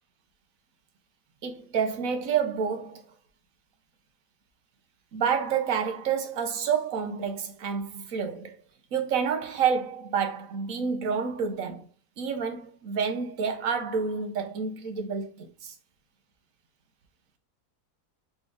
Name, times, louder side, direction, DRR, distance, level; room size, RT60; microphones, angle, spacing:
voice 1, 1.4-3.0 5.1-8.6 8.9-11.9 12.2-15.7, right 6 dB, 60° right, 1.2 m, -29 dB
4.0 x 3.3 x 3.6 m
omnidirectional pair, 1.7 m